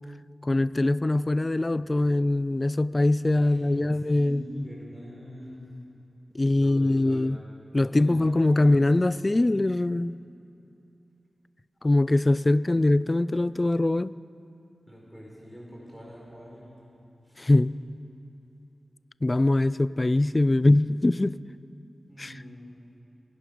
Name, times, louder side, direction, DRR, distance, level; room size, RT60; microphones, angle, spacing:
voice 1, 0.4-4.4 6.3-7.4 7.7-10.2 11.8-14.1 17.4-17.7 19.2-21.4 22.2-22.3, left 2 dB, 35° left, 0.3 m, -22 dB
voice 2, 3.4-3.8 4.1-5.7 6.5-7.3 7.8-9.6 12.5-12.8 14.9-16.9 17.2-17.5 22.1-22.8, equal, ahead, 4.5 m, -45 dB
22.0 x 11.5 x 5.2 m
cardioid pair, 40°, 0 cm